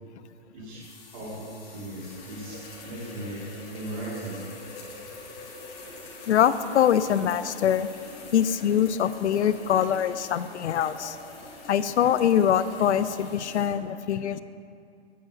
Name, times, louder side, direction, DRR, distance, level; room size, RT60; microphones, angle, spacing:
voice 1, 0.5-4.5, right 1 dB, 30° right, -6 dB, 2.3 m, -38 dB
sound 1, 0.8-13.7, left 3 dB, 25° left, 1.3 m, -44 dB
voice 2, 6.3-7.9 8.3-11.2 11.7-14.4, left 9 dB, 75° left, 13 dB, 0.5 m, -23 dB
7.8 x 7.8 x 5.0 m, 2.4 s
hypercardioid pair, 155°, 35 cm